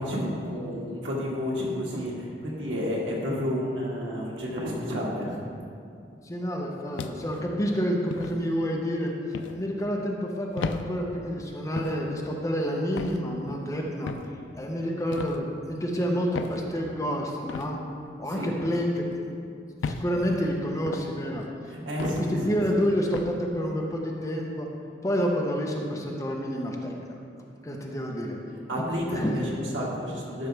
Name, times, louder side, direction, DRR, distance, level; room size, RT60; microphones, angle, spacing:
voice 1, 0.0-5.4 18.3-18.5 21.7-22.9 28.7-30.5, equal, 90° right, -4 dB, 1.8 m, -30 dB
voice 2, 6.3-9.1 9.5-14.1 14.5-17.8 18.2-19.0 19.8-21.4 22.5-24.7 25.0-26.9 27.6-28.4 29.1-29.4, equal, 15° left, -1 dB, 0.8 m, -28 dB
sound 1, 7.0-7.4 8.1-8.4 9.3-9.6 10.6-10.8 11.8-12.0 13.0-13.2 14.1-14.3 15.1-15.4 16.3-16.6 17.5-17.7 18.6-18.8 19.8-20.1 20.9-21.1 22.0-22.3 23.1-23.3, left 4 dB, 85° left, 0.4 m, -34 dB
12.0 x 5.8 x 3.4 m, 2.5 s
head